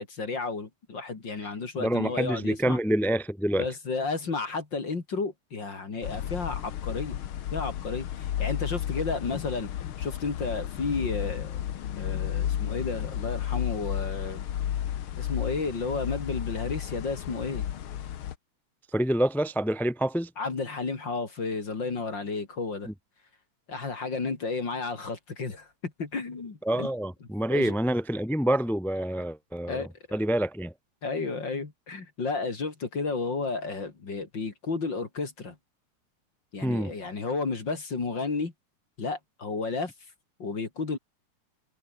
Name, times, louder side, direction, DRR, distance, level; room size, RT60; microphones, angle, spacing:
voice 1, 0.0-2.8 3.6-7.2 7.5-9.7 10.0-11.6 12.0-14.4 15.2-17.6 20.4-22.9 23.7-26.9 27.5-27.7 29.7-30.2 31.0-35.6 36.5-38.5 39.0-39.9 40.4-41.0, left 4 dB, 35° left, 3.3 m, -32 dB
voice 2, 1.8-3.7 18.9-20.3 26.6-30.7 36.6-36.9, right 1 dB, ahead, 2.7 m, -27 dB
sound 1, 6.0-18.4, left 10 dB, 65° left, 1.3 m, -33 dB
omnidirectional pair, 3.9 m